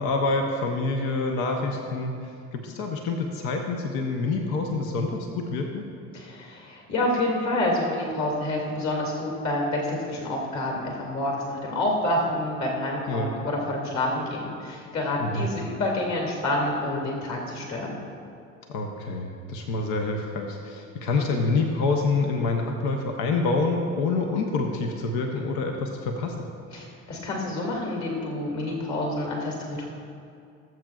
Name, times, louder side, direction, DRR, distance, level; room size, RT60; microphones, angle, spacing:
voice 1, 0.0-2.1 2.5-5.9 13.1-13.3 15.2-15.5 18.7-26.3, left 3 dB, 65° left, 2 dB, 1.0 m, -27 dB
voice 2, 6.1-18.0 26.7-29.9, left 1 dB, 45° left, -1 dB, 2.4 m, -28 dB
19.0 x 7.7 x 2.4 m, 2.5 s
hypercardioid pair, 55°, 38 cm